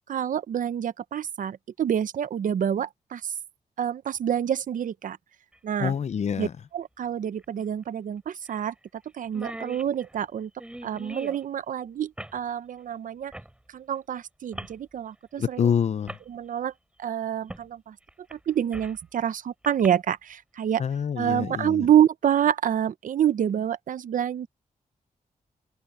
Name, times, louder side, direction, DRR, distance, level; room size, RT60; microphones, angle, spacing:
voice 1, 0.1-3.3 3.8-5.2 5.6-5.9 6.4-6.5 6.7-8.7 9.1-10.5 10.8-13.3 13.7-15.7 16.3-16.7 17.0-17.9 18.3-20.8 21.2-24.5, right 9 dB, 70° right, 0.7 m, -27 dB
sound 1, 5.5-5.6 7.4-7.5 7.8-7.9 8.5-8.7 9.0-9.1 9.2-11.4 12.2-12.4 13.3-13.5 14.5-14.8 15.6-15.7 16.1-16.2 17.5-17.7 18.1-19.0 19.6-19.9, right 1 dB, 5° right, 3.3 m, -41 dB
voice 2, 5.8-6.5 15.4-16.2 20.8-21.9, left 7 dB, 50° left, 0.7 m, -26 dB
open air
wide cardioid pair, 130°, 14 cm